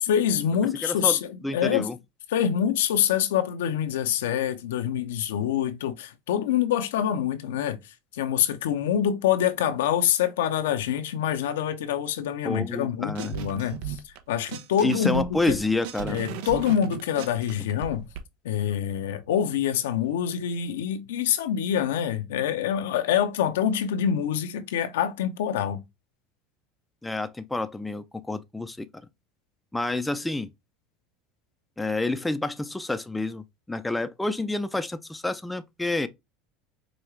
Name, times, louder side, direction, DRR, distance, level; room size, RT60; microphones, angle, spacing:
voice 1, 0.1-1.9 2.3-7.8 8.1-15.6 16.1-18.1 18.4-25.8, left 9 dB, 85° left, 0.6 m, -26 dB
voice 2, 0.8-1.2 1.4-2.0 12.4-13.4 14.8-16.2 27.0-28.9 29.7-30.5 31.8-36.1, left 2 dB, 5° left, 0.4 m, -29 dB
sound 1, 13.2-14.2 14.5-18.2, right 8 dB, 75° right, 0.6 m, -37 dB
4.9 x 2.3 x 3.1 m
supercardioid pair, 95°, 0 cm